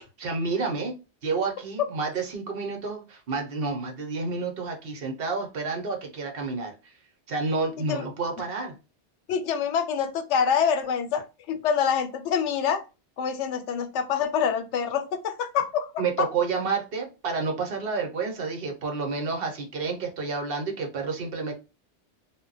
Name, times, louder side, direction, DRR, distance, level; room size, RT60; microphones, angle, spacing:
voice 1, 0.2-6.9 7.3-8.8 16.0-21.5, right 4 dB, 60° right, 2 dB, 0.9 m, -30 dB
voice 2, 9.3-12.8 13.2-15.9, left 7 dB, 85° left, 8 dB, 0.9 m, -26 dB
2.2 x 2.1 x 3.8 m, 0.29 s
omnidirectional pair, 1.2 m